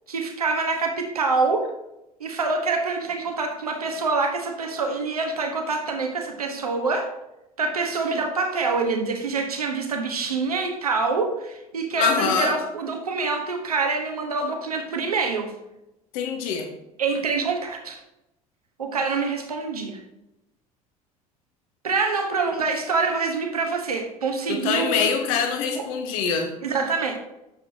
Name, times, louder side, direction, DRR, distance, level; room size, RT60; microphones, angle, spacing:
voice 1, 0.1-1.7 2.2-7.1 7.6-15.5 17.0-18.0 18.8-20.0 21.8-25.1 25.7-25.9 26.6-27.2, right 4 dB, 85° right, 3 dB, 1.2 m, -26 dB
voice 2, 12.0-12.6 16.1-16.7 24.5-26.5, left 6 dB, 65° left, 4 dB, 1.4 m, -24 dB
9.2 x 7.0 x 2.8 m, 0.89 s
figure-of-eight pair, 65°, 19 cm